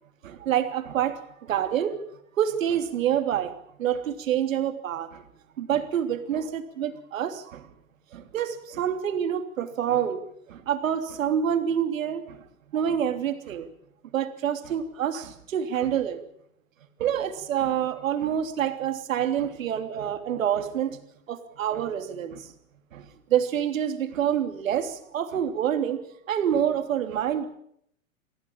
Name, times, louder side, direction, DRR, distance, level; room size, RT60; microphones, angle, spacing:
voice 1, 0.2-2.0 2.3-5.2 5.6-7.7 8.1-10.2 10.5-12.5 12.7-13.7 14.1-16.2 17.0-21.0 21.3-22.5 22.9-27.5, right 9 dB, 70° right, 8 dB, 3.2 m, -27 dB
24.5 x 16.5 x 8.8 m, 0.73 s
hypercardioid pair, 125°, 41 cm